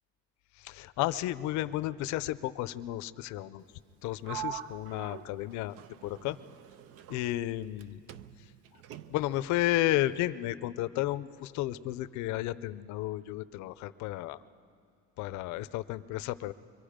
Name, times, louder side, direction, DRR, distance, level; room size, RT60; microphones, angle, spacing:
voice 1, 0.6-3.6 4.0-5.8 6.0-6.4 7.1-8.0 9.1-14.4 15.2-16.5, left 15 dB, 70° left, 15 dB, 0.7 m, -32 dB
Sliding door, 4.2-7.8 8.1-9.4, right 10 dB, 50° right, 0.6 m, -44 dB
25.0 x 24.0 x 5.1 m, 2.4 s
cardioid pair, 165°, 30 cm